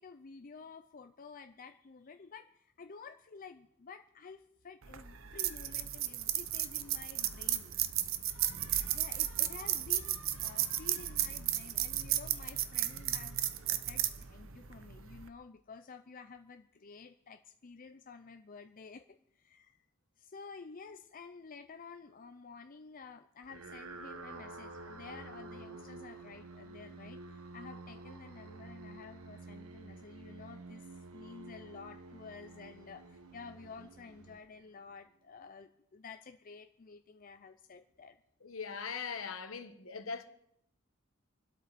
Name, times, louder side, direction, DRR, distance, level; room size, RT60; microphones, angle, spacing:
voice 1, 0.0-7.7 8.9-13.4 13.7-19.8 20.2-38.2, left 5 dB, 40° left, 0.6 m, -51 dB
sound 1, 4.8-15.3, right 12 dB, 65° right, 0.9 m, -34 dB
sound 2, 23.4-34.9, right 3 dB, 85° right, 1.4 m, -50 dB
voice 2, 38.4-40.2, left 5 dB, 70° left, 1.4 m, -40 dB
25.0 x 12.5 x 4.2 m
head